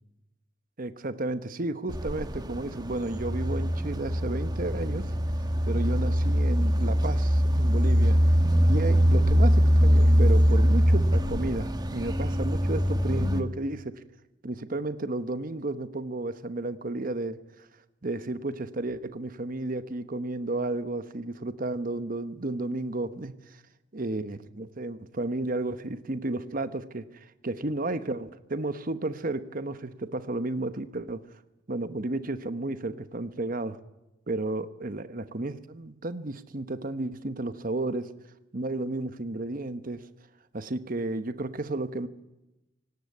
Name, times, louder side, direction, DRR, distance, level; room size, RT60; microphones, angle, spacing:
voice 1, 0.8-5.1 5.6-8.2 8.7-13.9 14.4-17.4 18.0-23.6 23.9-31.2 31.7-33.8 34.3-38.1 38.5-40.1 40.5-42.1, right 2 dB, 45° right, 12 dB, 1.0 m, -32 dB
sound 1, 1.9-13.4, equal, 20° right, 1.3 m, -23 dB
18.0 x 18.0 x 9.5 m, 0.97 s
head